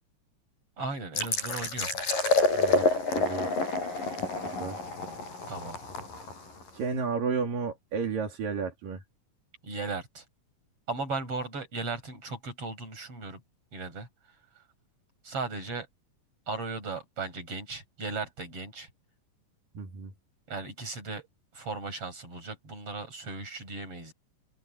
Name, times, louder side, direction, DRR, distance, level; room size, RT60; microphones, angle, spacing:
voice 1, 0.8-2.0 5.5-5.8 9.6-10.2 10.9-13.4 13.7-14.1 14.6-14.7 15.2-15.9 16.5-18.9 20.5-21.3 21.5-24.1, right 3 dB, 40° right, 8.0 m, -36 dB
sound 1, 1.1-6.7, left 3 dB, 80° left, 9.6 m, -28 dB
voice 2, 2.6-2.9 3.1-3.5 4.2-4.8 6.7-9.0 19.7-20.1, right 5 dB, 75° right, 4.7 m, -32 dB
open air
omnidirectional pair, 3.9 m